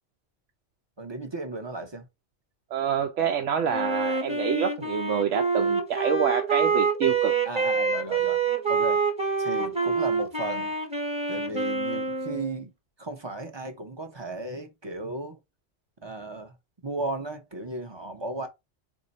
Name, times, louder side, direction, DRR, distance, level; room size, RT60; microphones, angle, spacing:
voice 1, 1.0-2.1 7.5-8.4 8.7-9.0 9.4-10.7 11.3-12.7 13.0-15.4 16.0-16.5 16.8-18.5, right 2 dB, 30° right, 0.6 m, -35 dB
voice 2, 2.7-7.4, right 7 dB, 80° right, 1.0 m, -27 dB
Wind instrument woodwind instrument, 3.7-12.6, right 5 dB, 5° right, 0.9 m, -26 dB
4.2 x 2.7 x 4.0 m
omnidirectional pair, 1.2 m